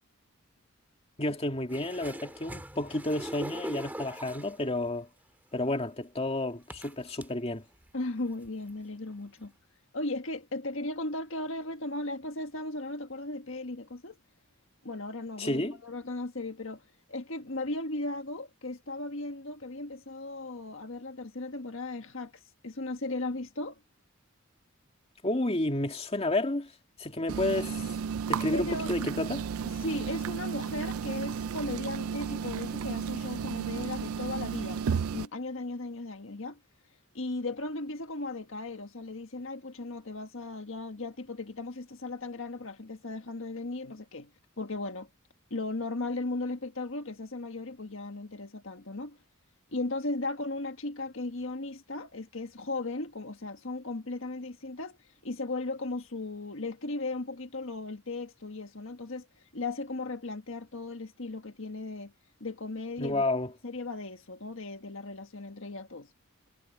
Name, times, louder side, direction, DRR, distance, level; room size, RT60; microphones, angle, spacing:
voice 1, 1.2-5.1 5.5-7.6 15.4-15.8 25.2-26.7 27.0-27.9 28.3-29.5 63.0-63.5, left 2 dB, 30° left, 2.3 m, -31 dB
sound 1, 1.7-4.7 5.7-5.8 6.7-7.3 7.8-7.9 8.3-8.7 9.4-9.5, right 1 dB, 10° right, 2.0 m, -41 dB
voice 2, 7.9-9.5 9.9-14.2 14.8-16.8 17.1-22.3 22.6-23.8 28.5-29.1 29.6-36.6 37.1-44.3 44.6-45.1 45.5-49.2 49.7-55.0 55.2-59.2 59.5-62.1 62.4-63.3 63.6-66.1, left 2 dB, 65° left, 1.6 m, -36 dB
sound 2, 27.3-35.3, right 6 dB, 85° right, 0.4 m, -33 dB
head